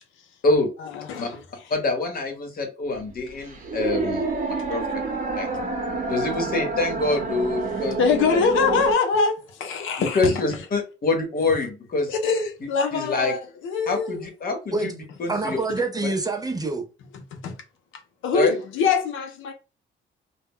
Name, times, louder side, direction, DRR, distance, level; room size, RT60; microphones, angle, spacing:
voice 1, 0.8-1.7 7.6-10.6 12.1-14.3 17.3-17.5 18.2-19.5, left 5 dB, 80° left, 0.6 m, -24 dB
voice 2, 1.7-4.8 5.4-5.5 6.1-8.0 8.3-8.4 10.0-12.1 12.9-13.3 13.9-15.6 18.3-18.6, left 3 dB, 50° left, 1.0 m, -25 dB
sound 1, 2.9-8.9, right 3 dB, 40° right, 0.9 m, -28 dB
voice 3, 15.3-16.9, right 3 dB, 20° right, 0.5 m, -26 dB
2.2 x 2.1 x 3.6 m
cardioid pair, 90°, 20 cm